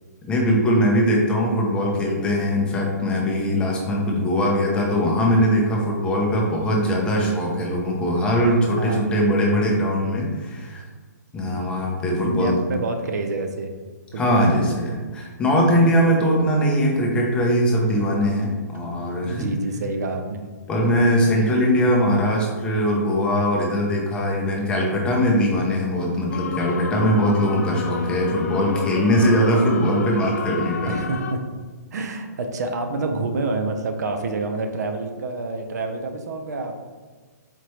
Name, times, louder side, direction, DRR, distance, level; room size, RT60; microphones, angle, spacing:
voice 1, 0.3-10.8 11.3-12.6 14.2-19.4 20.7-30.9, equal, 10° left, -2 dB, 0.6 m, -21 dB
voice 2, 8.8-9.7 11.4-11.7 12.2-13.7 14.1-14.8 19.3-20.5 30.9-31.4 31.9-36.8, right 3 dB, 65° right, 6 dB, 0.6 m, -28 dB
sound 1, 26.3-31.3, left 5 dB, 55° left, 0.4 m, -30 dB
4.3 x 2.9 x 3.1 m, 1.4 s
hypercardioid pair, 155°, 10 cm